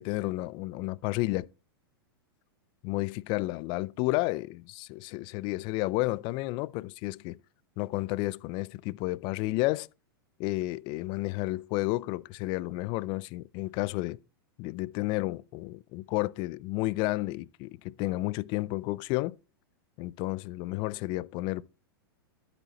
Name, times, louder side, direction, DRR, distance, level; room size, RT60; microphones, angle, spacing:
voice 1, 0.0-1.5 2.8-7.4 7.8-9.9 10.4-14.2 14.6-19.4 20.0-21.6, left 20 dB, 40° left, 0.4 m, -31 dB
12.0 x 8.2 x 2.9 m
hypercardioid pair, 120°, 13 cm